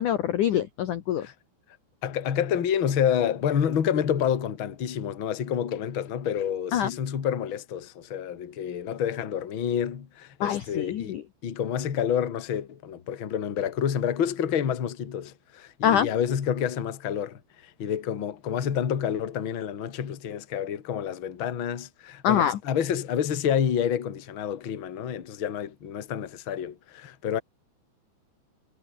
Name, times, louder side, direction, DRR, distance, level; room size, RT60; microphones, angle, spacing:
voice 1, 0.0-1.2 6.7-6.9 10.4-11.2 15.8-16.1 22.2-22.6, left 10 dB, 75° left, 1.8 m, -24 dB
voice 2, 2.0-27.4, left 8 dB, 50° left, 1.5 m, -28 dB
omnidirectional pair, 5.6 m